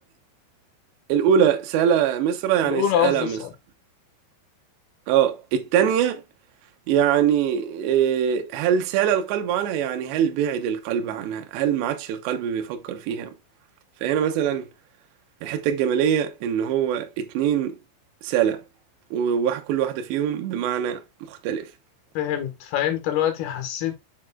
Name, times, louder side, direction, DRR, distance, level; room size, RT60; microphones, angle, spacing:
voice 1, 1.1-3.4 5.1-6.2 6.9-13.3 14.0-14.7 15.4-17.7 18.2-18.6 19.1-21.0 21.3-21.7, right 9 dB, 75° right, 2.7 m, -23 dB
voice 2, 2.6-3.5 22.1-23.9, left 10 dB, 65° left, 2.8 m, -25 dB
7.3 x 6.5 x 2.3 m
omnidirectional pair, 5.9 m